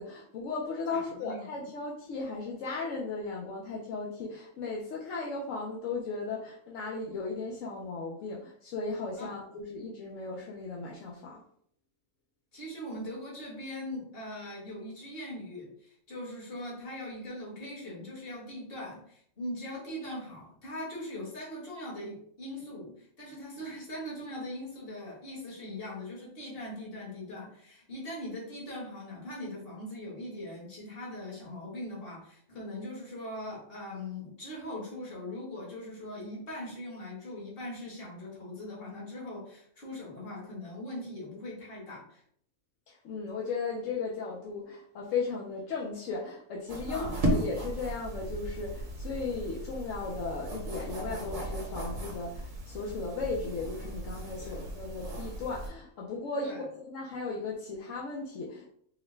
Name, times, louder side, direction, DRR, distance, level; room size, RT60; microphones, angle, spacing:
voice 1, 0.0-11.4 42.9-58.7, left 4 dB, 75° left, -3 dB, 1.0 m, -36 dB
voice 2, 0.9-1.4 9.2-9.3 12.5-42.2 46.9-47.1 54.4-54.6 56.4-56.6, left 1 dB, 45° left, -4 dB, 1.5 m, -41 dB
sound 1, 46.7-55.7, right 1 dB, 60° right, 1.3 m, -36 dB
4.6 x 2.1 x 3.2 m, 0.64 s
omnidirectional pair, 1.4 m